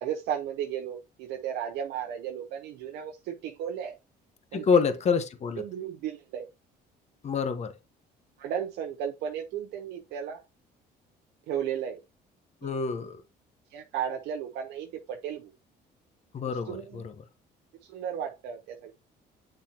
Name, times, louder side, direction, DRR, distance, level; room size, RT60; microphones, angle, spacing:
voice 1, 0.0-3.9 4.5-4.7 5.6-6.5 8.4-10.4 11.5-12.0 12.6-12.7 13.7-15.5 16.4-17.0 17.8-18.9, right 9 dB, 85° right, 0.8 m, -34 dB
voice 2, 4.5-5.6 7.2-7.7 12.6-13.2 16.3-17.1, left 5 dB, 40° left, 1.0 m, -27 dB
8.9 x 3.6 x 2.9 m
cardioid pair, 110°, 17 cm